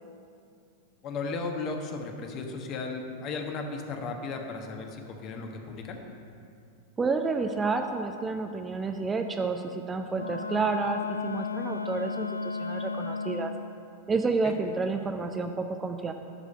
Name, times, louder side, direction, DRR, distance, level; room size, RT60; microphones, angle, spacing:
voice 1, 1.0-6.0 14.4-14.5, left 3 dB, 35° left, 3 dB, 1.3 m, -35 dB
voice 2, 7.0-13.5 14.1-16.1, right 4 dB, 15° right, 5 dB, 0.6 m, -30 dB
Wind instrument woodwind instrument, 10.1-13.8, left 4 dB, 75° left, 0.4 m, -34 dB
11.0 x 5.0 x 8.5 m, 2.5 s
figure-of-eight pair, 90°, 0 cm